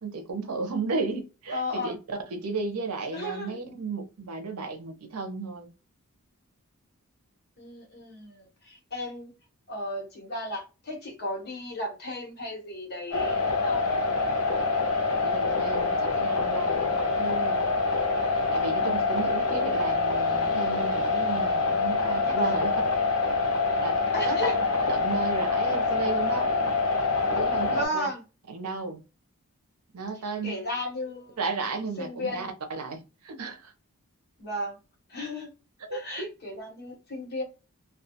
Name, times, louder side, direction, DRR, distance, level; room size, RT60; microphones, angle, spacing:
voice 1, 0.0-5.7 15.2-17.7 18.5-22.7 23.8-24.0 24.2-24.5 24.8-26.5 27.3-28.1 28.5-29.0 29.9-30.6 31.4-33.7 35.8-36.3, right 4 dB, 85° right, 0.7 m, -34 dB
voice 2, 1.5-1.9 3.1-3.5 7.6-9.3 9.7-13.8 22.3-22.6 24.1-24.5 27.7-28.2 30.4-31.4 32.0-32.5 34.4-34.8 35.1-35.5 35.9-37.4, left 1 dB, 45° left, 1.1 m, -34 dB
sound 1, 13.1-27.9, left 3 dB, 80° left, 0.6 m, -25 dB
2.3 x 2.3 x 2.7 m
head